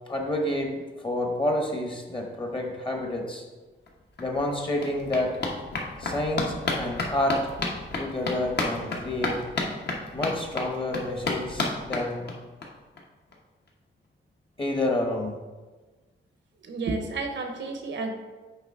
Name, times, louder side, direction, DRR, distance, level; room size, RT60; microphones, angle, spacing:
voice 1, 0.1-3.4 4.2-5.4 6.0-7.4 8.0-9.4 10.1-12.3 14.6-15.4, left 1 dB, 25° left, 2 dB, 0.9 m, -29 dB
sound 1, 3.9-4.0 4.2-12.7 13.0-13.1 13.3-13.4 13.7-13.8, left 2 dB, 55° left, 1.0 m, -32 dB
voice 2, 16.6-18.1, right 3 dB, 65° right, 5 dB, 0.8 m, -31 dB
6.8 x 4.9 x 3.6 m, 1.3 s
wide cardioid pair, 130°, 20 cm